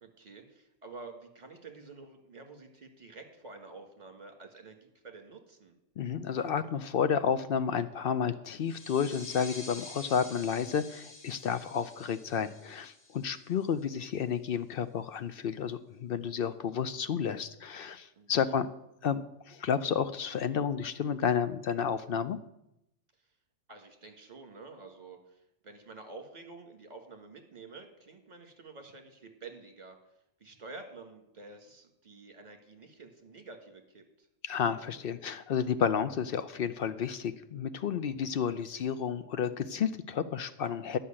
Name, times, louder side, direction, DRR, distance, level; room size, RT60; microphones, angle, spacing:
voice 1, 0.0-5.8 18.2-18.5 23.7-30.0 30.4-34.3, right 3 dB, 35° right, 5 dB, 1.7 m, -49 dB
voice 2, 6.0-18.7 19.0-22.4 34.4-41.0, left 7 dB, 60° left, 12 dB, 0.6 m, -31 dB
sound 1, 8.6-14.0, left 2 dB, 45° left, 1.5 m, -49 dB
11.0 x 5.7 x 8.6 m, 0.83 s
omnidirectional pair, 1.3 m